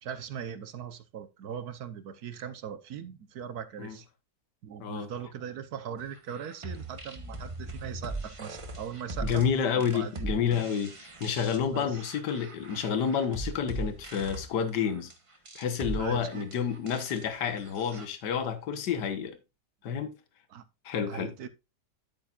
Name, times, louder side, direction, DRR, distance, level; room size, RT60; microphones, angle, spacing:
voice 1, 0.0-4.1 4.6-9.5 9.7-10.3 11.7-12.0 16.0-16.4 20.5-20.6 21.1-21.5, right 8 dB, 65° right, 1.3 m, -40 dB
sound 1, 6.1-18.1, right 2 dB, 20° right, 1.0 m, -40 dB
voice 2, 9.2-15.1 15.6-19.4 19.8-20.1 20.9-21.3, left 7 dB, 75° left, 1.8 m, -29 dB
9.8 x 8.7 x 2.4 m
omnidirectional pair, 1.9 m